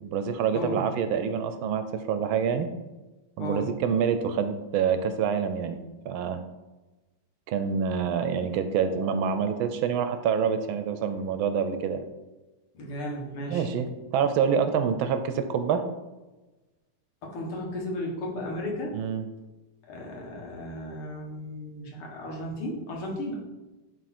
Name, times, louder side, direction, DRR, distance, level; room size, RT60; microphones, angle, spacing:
voice 1, 0.0-2.7 3.4-5.8 6.0-6.4 7.5-12.1 13.5-15.8 18.9-19.3, right 7 dB, 75° right, 9 dB, 1.3 m, -26 dB
voice 2, 0.5-0.8 3.4-3.7 12.7-13.7 17.2-18.9 19.9-23.4, left 1 dB, 80° left, -2 dB, 2.5 m, -34 dB
10.5 x 3.7 x 4.3 m, 1.1 s
omnidirectional pair, 2.4 m